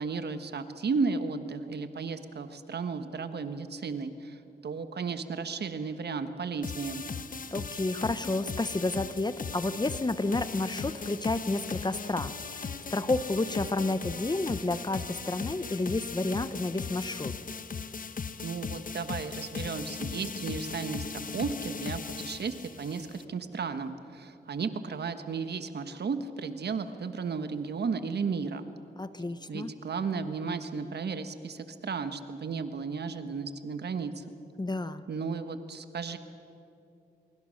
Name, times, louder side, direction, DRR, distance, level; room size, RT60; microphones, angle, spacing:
voice 1, 0.0-7.0 18.4-28.6 29.5-34.2 35.1-36.2, right 5 dB, 70° right, 10 dB, 1.4 m, -34 dB
sound 1, 6.6-23.2, left 5 dB, 50° left, 1.0 m, -38 dB
voice 2, 7.5-17.3 29.0-29.7 34.6-35.0, left 2 dB, 25° left, 13 dB, 0.9 m, -31 dB
25.0 x 23.0 x 6.5 m, 2.7 s
cardioid pair, 80°, 17 cm